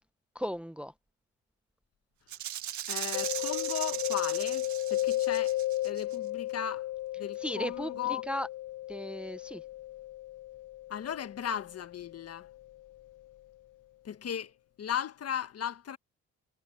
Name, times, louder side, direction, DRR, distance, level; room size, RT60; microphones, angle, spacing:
voice 1, 0.3-0.9 7.4-8.5 8.9-9.6, equal, 5° right, 0.7 m, -36 dB
Rattle (instrument), 2.3-6.1, right 11 dB, 70° right, 1.6 m, -38 dB
voice 2, 2.9-5.6 5.8-6.9 7.2-8.2 10.9-12.5 14.0-14.5 14.8-16.0, left 9 dB, 55° left, 1.5 m, -36 dB
Mallet percussion, 3.1-12.7, left 15 dB, 90° left, 0.8 m, -35 dB
cardioid pair, 90°, 30 cm